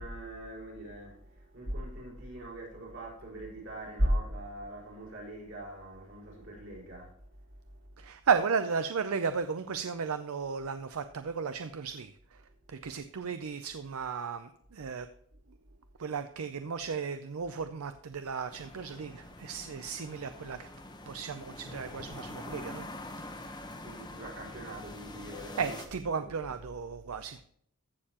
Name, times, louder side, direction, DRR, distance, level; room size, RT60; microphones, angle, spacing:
voice 1, 0.0-7.1 7.6-7.8 23.4-23.5 23.8-25.7 26.2-26.3, equal, 55° right, 4.4 m, -38 dB
voice 2, 8.0-12.4 12.7-15.1 16.0-20.7 21.1-22.9 25.6-27.4, right 5 dB, 80° right, 0.5 m, -34 dB
sound 1, 18.5-25.9, left 2 dB, 20° left, 0.9 m, -45 dB
14.5 x 6.7 x 2.9 m
head